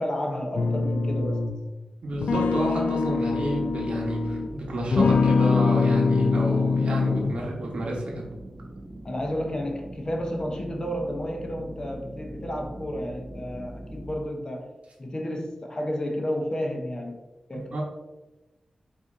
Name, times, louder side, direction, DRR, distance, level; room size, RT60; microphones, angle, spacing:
voice 1, 0.0-1.4 9.0-14.7 15.0-17.2 17.5-17.8, equal, 35° left, 2 dB, 0.8 m, -31 dB
sound 1, 0.5-1.6 2.2-4.5 4.9-7.5, left 4 dB, 85° left, 0.4 m, -24 dB
voice 2, 2.0-8.3 17.5-17.8, right 1 dB, 70° right, -2 dB, 1.0 m, -30 dB
sound 2, 2.1-14.3, right 1 dB, 20° right, 0.5 m, -42 dB
4.2 x 2.7 x 3.6 m, 1.1 s
cardioid pair, 65°, 2 cm